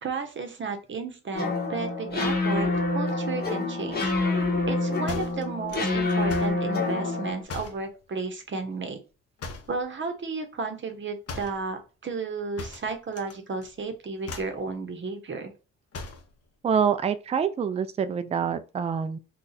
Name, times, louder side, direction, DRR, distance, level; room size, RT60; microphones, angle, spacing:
voice 1, 0.0-4.1 4.7-9.0 9.7-15.5, right 4 dB, 40° right, 0.8 m, -33 dB
sound 1, 1.3-7.4, left 3 dB, 30° left, 1.1 m, -27 dB
sound 2, 5.1-6.6 7.5-7.9 9.4-9.8 11.3-11.6 12.6-13.3 13.6-13.9 14.2-14.6 15.9-16.3, left 3 dB, 50° left, 0.8 m, -38 dB
voice 2, 16.6-19.2, right 7 dB, 20° right, 0.3 m, -26 dB
2.6 x 2.3 x 3.9 m
supercardioid pair, 65°, 30 cm